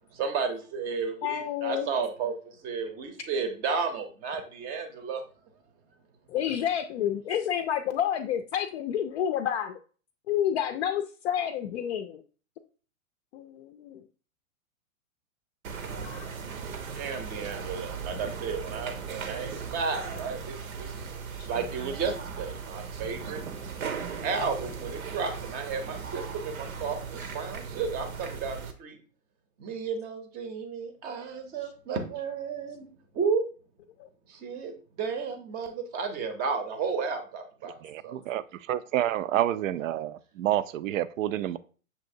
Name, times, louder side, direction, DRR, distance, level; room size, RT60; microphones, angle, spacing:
voice 1, 0.1-5.2 16.9-21.1 21.5-23.4 24.2-29.0 29.6-33.4 34.3-37.8 38.0-38.2, right 5 dB, 20° right, 6 dB, 0.6 m, -33 dB
voice 2, 1.2-1.9 6.3-9.8 10.3-12.2 13.3-14.0 16.0-16.3 21.4-21.5 34.0-34.1, left 9 dB, 55° left, 6 dB, 0.5 m, -29 dB
sound 1, 15.6-28.7, right 6 dB, 85° right, 0.9 m, -38 dB
voice 3, 37.6-41.6, right 12 dB, 70° right, 15 dB, 0.5 m, -29 dB
6.6 x 2.8 x 2.6 m, 0.39 s
hypercardioid pair, 130°, 41 cm